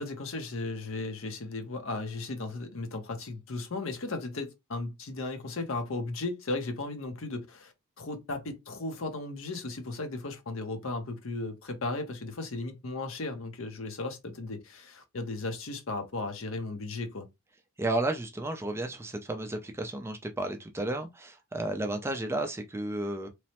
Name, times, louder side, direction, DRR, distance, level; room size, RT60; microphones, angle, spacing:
voice 1, 0.0-17.3, left 3 dB, 65° left, 0.7 m, -36 dB
voice 2, 17.8-23.3, right 2 dB, 10° right, 0.3 m, -32 dB
3.0 x 2.0 x 2.9 m
head